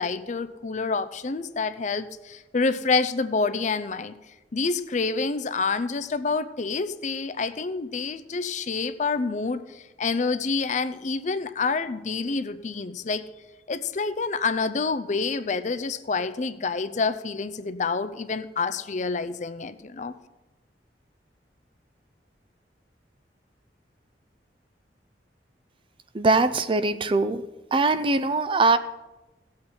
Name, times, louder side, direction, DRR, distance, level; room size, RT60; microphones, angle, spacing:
voice 1, 0.0-4.1 4.5-13.2 13.7-20.1, left 4 dB, 45° left, 12 dB, 0.5 m, -28 dB
voice 2, 26.1-27.4 27.7-28.8, right 3 dB, 30° right, 12 dB, 0.5 m, -21 dB
17.0 x 7.6 x 4.4 m, 1.1 s
head